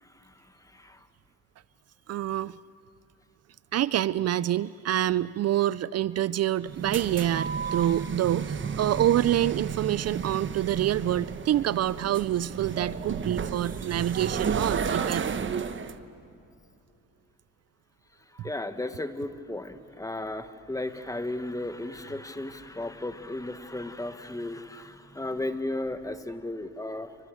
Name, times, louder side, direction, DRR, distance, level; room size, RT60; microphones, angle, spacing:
voice 1, 0.0-1.1 18.3-27.1, left 2 dB, 10° left, 9 dB, 1.4 m, -35 dB
voice 2, 2.1-2.6 3.7-15.4 18.4-18.5, right 12 dB, 55° right, 18 dB, 0.5 m, -27 dB
sound 1, 6.6-16.0, right 6 dB, 40° right, 1.2 m, -32 dB
28.0 x 24.5 x 6.4 m, 2.7 s
cardioid pair, 90°, 30 cm